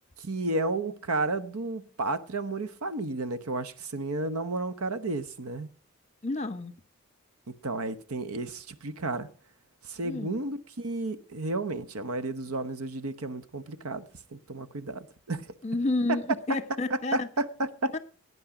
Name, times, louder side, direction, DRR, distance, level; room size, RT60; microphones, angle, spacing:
voice 1, 0.2-5.7 7.5-9.3 9.8-15.5 17.1-18.0, right 2 dB, 90° right, 1.0 m, -32 dB
voice 2, 6.2-6.7 10.0-10.4 15.6-17.3 17.9-18.0, left 2 dB, 30° left, 1.1 m, -30 dB
17.5 x 9.5 x 5.0 m
head